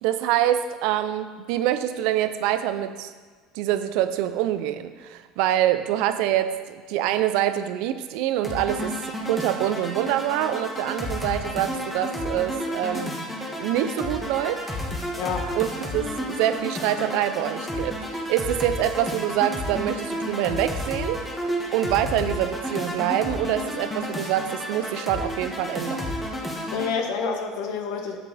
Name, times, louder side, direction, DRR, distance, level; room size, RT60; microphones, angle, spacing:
voice 1, 0.0-3.1 3.5-13.2 13.6-14.6 15.5-21.2 21.7-26.1, right 12 dB, 75° right, 11 dB, 0.6 m, -25 dB
sound 1, 8.4-26.9, equal, 10° left, 1.7 m, -31 dB
voice 2, 15.2-15.5 26.7-28.2, left 5 dB, 70° left, 4 dB, 1.4 m, -28 dB
10.0 x 7.6 x 4.2 m, 1.5 s
supercardioid pair, 120°, 0 cm